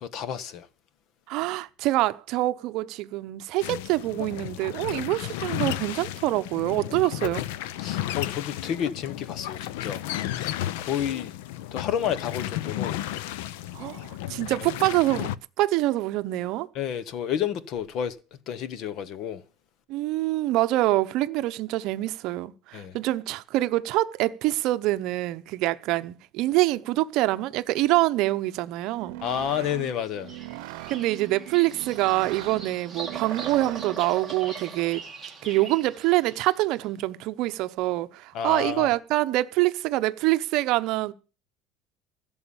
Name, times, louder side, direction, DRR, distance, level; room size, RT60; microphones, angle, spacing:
voice 1, 0.0-0.7 7.8-10.0 10.3-11.3 11.7-13.0 16.7-18.2 18.5-19.4 22.7-22.9 29.2-30.3 38.3-38.9, left 9 dB, 40° left, 1.1 m, -30 dB
voice 2, 1.3-7.4 13.7-15.3 15.6-16.7 19.9-29.2 30.9-35.0 35.4-41.1, right 17 dB, 50° right, 0.9 m, -25 dB
sound 1, 3.6-15.4, left 13 dB, 85° left, 0.7 m, -33 dB
sound 2, 28.9-34.1, right 17 dB, 80° right, 0.8 m, -40 dB
Bird vocalization bird call bird song, 30.0-36.7, right 5 dB, 5° right, 2.9 m, -41 dB
15.5 x 7.1 x 7.1 m
cardioid pair, 170°, 0 cm